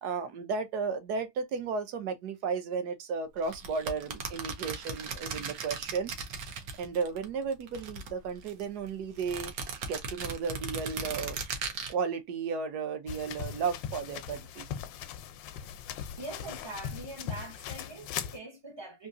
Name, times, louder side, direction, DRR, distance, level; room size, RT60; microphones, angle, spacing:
voice 1, 0.0-6.1 6.8-9.5 9.8-11.4 11.9-14.7, right 5 dB, 65° right, 1.3 m, -34 dB
sound 1, 3.4-7.2 7.5-8.6 9.2-11.9, right 5 dB, 85° right, 1.6 m, -37 dB
sound 2, 13.1-18.4, left 9 dB, 90° left, 1.3 m, -39 dB
voice 2, 16.2-19.1, right 2 dB, 35° right, 0.4 m, -43 dB
3.8 x 2.7 x 2.5 m
omnidirectional pair, 1.9 m